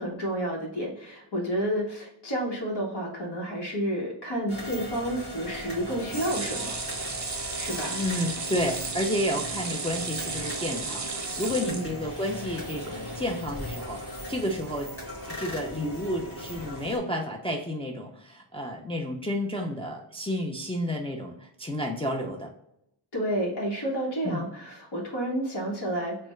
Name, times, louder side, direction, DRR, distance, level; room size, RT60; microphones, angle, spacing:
voice 1, 0.0-6.7 7.6-8.0 11.6-11.9 23.1-26.2, right 1 dB, 55° left, -2 dB, 1.1 m, -30 dB
sound 1, 4.5-17.0, equal, 30° left, 1.2 m, -38 dB
sound 2, 6.1-12.4 12.8-12.9 13.2-13.3, right 4 dB, 40° right, 0.6 m, -34 dB
voice 2, 7.9-14.9 15.4-22.5 24.2-24.4, left 1 dB, 15° left, 0 dB, 0.4 m, -31 dB
3.3 x 2.1 x 3.1 m, 0.74 s
wide cardioid pair, 100°, 47 cm